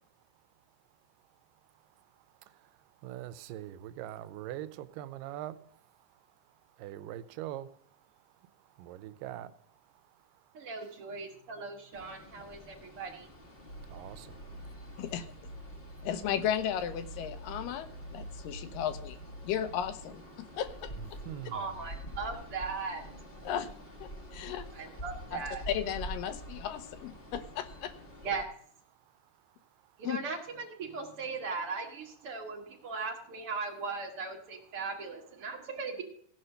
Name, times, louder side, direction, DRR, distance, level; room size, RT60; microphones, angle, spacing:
voice 1, 1.2-11.0 12.4-12.9 13.6-15.0 15.7-16.1 18.3-18.8 20.4-20.6 21.0-21.8 24.1-24.5 27.2-27.3 28.9-30.1, right 12 dB, 90° right, 2.3 m, -46 dB
voice 2, 10.5-13.3 21.5-23.0 24.7-25.6 28.2-28.4 30.0-36.0, right 4 dB, 50° right, 2.0 m, -38 dB
sound 1, 11.9-28.4, equal, 60° left, 0.5 m, -47 dB
sound 2, 13.7-20.1, right 1 dB, 35° left, 5.1 m, -47 dB
voice 3, 16.0-19.2 19.4-21.2 23.4-23.7 24.0-24.7 25.3-25.4 25.7-27.9 30.0-30.2, left 9 dB, 85° left, 2.5 m, -35 dB
15.5 x 5.6 x 6.5 m
omnidirectional pair, 3.9 m